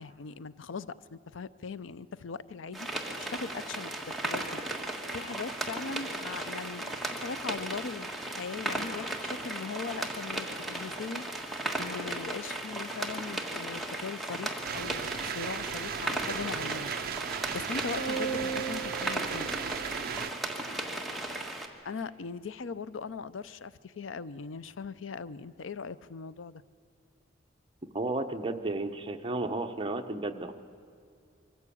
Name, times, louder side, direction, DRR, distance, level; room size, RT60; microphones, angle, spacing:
voice 1, 0.0-2.9 3.2-4.4 5.1-11.2 11.8-16.9 17.5-19.5 21.8-26.6, left 5 dB, 85° left, 16 dB, 0.6 m, -40 dB
sound 1, 2.7-21.7, right 1 dB, ahead, 1.6 m, -36 dB
sound 2, 14.6-20.3, right 8 dB, 50° right, 0.4 m, -37 dB
sound 3, 18.0-20.6, right 5 dB, 60° left, 1.1 m, -37 dB
voice 2, 27.9-30.5, right 2 dB, 25° right, 5 dB, 0.9 m, -33 dB
23.5 x 14.5 x 8.5 m, 2.3 s
head